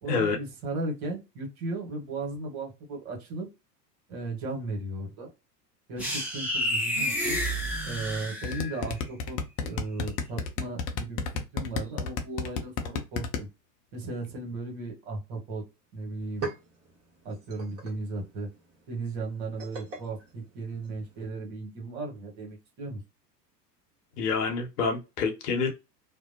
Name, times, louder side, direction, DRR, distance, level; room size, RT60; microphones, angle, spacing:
voice 1, 0.0-3.5 4.1-5.3 5.9-7.4 7.8-13.5 13.9-15.6 15.9-16.5 17.2-18.5 18.9-23.0, right 2 dB, 50° right, 1.3 m, -36 dB
sound 1, 6.0-8.9, equal, 5° right, 1.0 m, -30 dB
sound 2, 8.4-13.4, left 6 dB, 45° left, 0.7 m, -30 dB
sound 3, 15.7-15.8 16.1-21.3, right 4 dB, 30° right, 1.2 m, -43 dB
voice 2, 24.2-25.7, left 5 dB, 65° left, 0.9 m, -27 dB
2.5 x 2.1 x 2.6 m
figure-of-eight pair, 85°, 50 cm